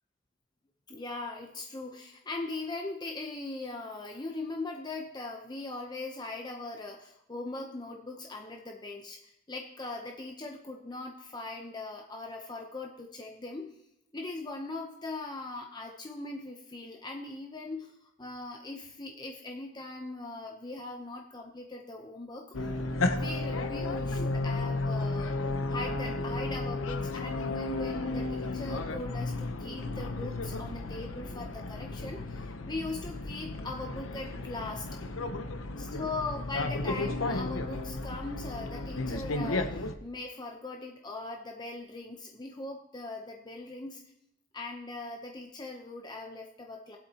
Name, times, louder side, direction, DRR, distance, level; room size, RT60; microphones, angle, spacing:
voice 1, 0.9-13.7 14.1-22.5 23.1-25.4 25.7-34.8 35.8-44.0 44.5-47.0, left 2 dB, 20° left, 2 dB, 0.8 m, -40 dB
sound 1, 22.5-40.0, left 2 dB, 90° left, 0.9 m, -33 dB
20.0 x 8.1 x 2.9 m, 0.79 s
head